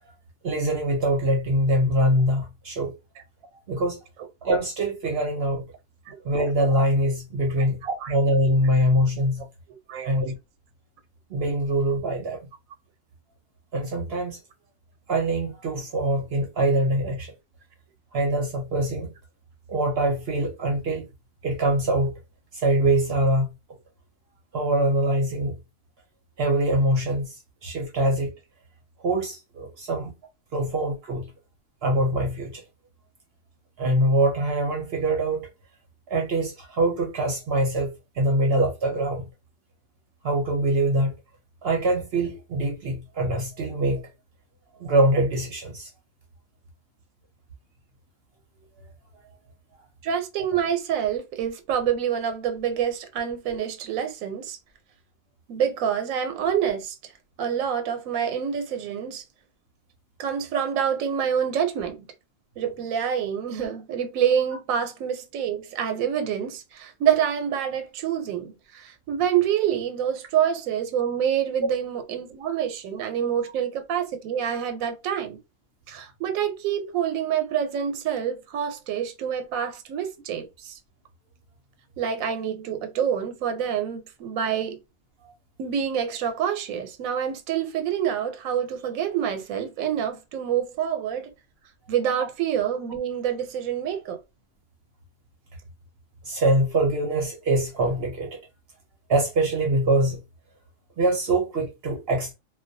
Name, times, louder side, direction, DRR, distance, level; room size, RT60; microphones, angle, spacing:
voice 1, 0.4-2.9 3.7-4.0 4.4-5.6 6.2-9.4 10.0-10.4 11.3-12.4 13.7-14.4 15.1-17.3 18.1-19.1 19.7-21.1 21.4-22.1 22.5-23.5 24.5-25.6 26.4-28.3 29.0-30.1 30.5-31.3 31.8-32.6 33.8-35.5 36.1-39.3 40.2-41.1 41.6-44.0 44.8-45.9 96.2-98.4 99.1-100.2 101.0-102.3, right 1 dB, 60° right, 0.7 m, -24 dB
voice 2, 9.9-10.2 50.0-54.6 55.5-57.1 57.4-59.2 60.2-62.1 62.6-75.4 75.9-80.8 82.0-84.8 85.6-91.3 91.9-94.2, right 8 dB, 90° right, 1.0 m, -27 dB
2.2 x 2.2 x 2.6 m
omnidirectional pair, 1.4 m